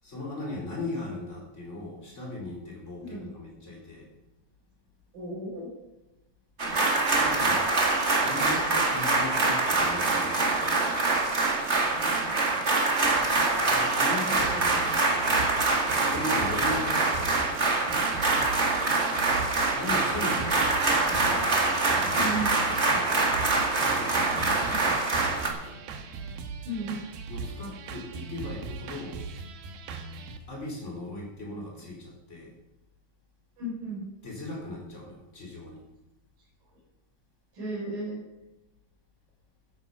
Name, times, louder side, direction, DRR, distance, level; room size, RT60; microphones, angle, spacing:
voice 1, 0.0-4.1 7.2-7.7 8.2-10.9 13.5-15.0 15.9-17.4 19.7-25.8 27.3-29.2 30.5-32.5 34.2-35.8, left 2 dB, 20° left, -2 dB, 4.4 m, -38 dB
voice 2, 5.1-5.7 18.5-18.9 22.1-22.6 26.6-27.0 33.6-34.0 37.5-38.2, right 1 dB, 65° right, -8 dB, 6.3 m, -34 dB
sound 1, 6.6-25.5, right 3 dB, 30° right, 1.4 m, -25 dB
sound 2, 14.4-30.4, right 4 dB, 90° right, 3.2 m, -39 dB
14.5 x 10.5 x 5.6 m, 0.96 s
omnidirectional pair, 4.2 m